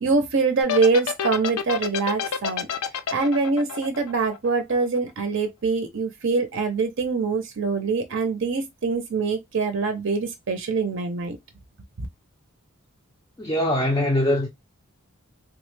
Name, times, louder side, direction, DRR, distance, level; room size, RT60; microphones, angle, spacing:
voice 1, 0.0-2.7 3.1-11.4, right 4 dB, 55° right, 0.5 m, -24 dB
sound 1, 0.6-5.0, left 7 dB, 85° left, 0.5 m, -28 dB
voice 2, 13.4-14.5, left 1 dB, 15° left, 0.4 m, -22 dB
3.5 x 2.1 x 3.1 m
head